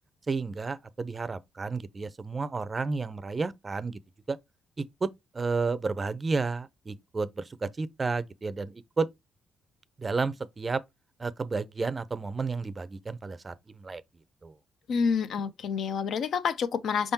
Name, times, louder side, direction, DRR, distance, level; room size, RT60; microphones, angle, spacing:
voice 1, 0.3-4.0 4.3-4.4 4.8-5.1 5.3-9.1 10.0-10.8 11.2-14.0 14.4-14.5, right 4 dB, 30° right, 0.5 m, -31 dB
voice 2, 14.9-17.1, left 6 dB, 65° left, 0.5 m, -28 dB
5.1 x 3.5 x 2.7 m
cardioid pair, 80°, 0 cm